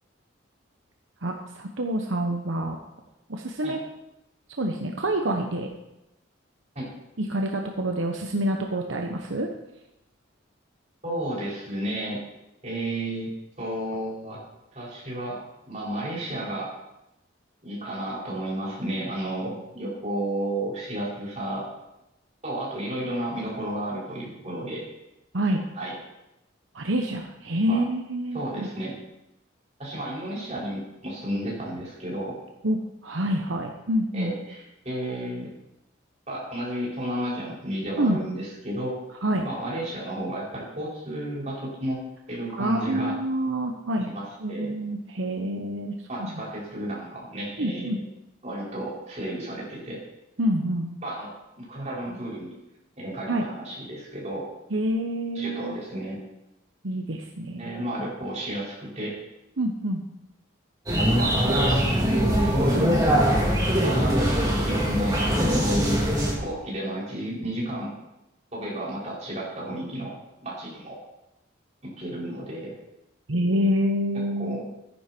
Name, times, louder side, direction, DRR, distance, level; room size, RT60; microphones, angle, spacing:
voice 1, 1.2-2.8 3.3-3.8 4.6-5.7 7.2-9.5 25.3-25.6 26.7-28.7 32.6-32.8 33.0-34.3 38.0-38.2 39.2-39.4 42.6-44.1 44.4-46.3 47.6-48.0 50.4-50.9 53.3-53.4 54.7-55.7 56.8-57.7 59.6-60.0 73.3-74.6, right 1 dB, 75° right, 2 dB, 1.1 m, -27 dB
voice 2, 11.0-12.2 12.6-13.3 13.6-14.4 14.7-16.7 17.6-21.7 22.4-24.8 25.7-25.9 27.7-27.8 28.3-28.9 29.8-32.4 34.1-35.5 36.3-39.0 39.4-42.0 42.3-43.1 44.1-44.7 46.1-48.0 48.4-50.0 51.0-51.3 51.6-52.6 53.0-54.5 55.3-56.2 57.6-59.2 61.0-63.2 63.8-64.3 64.6-66.0 66.4-67.9 68.5-70.1 70.4-71.0 72.0-72.7 74.4-74.6, right 1 dB, 35° right, -6 dB, 5.5 m, -32 dB
sound 1, 60.9-66.3, equal, 20° right, 3.3 m, -22 dB
14.5 x 10.0 x 4.6 m, 0.91 s
head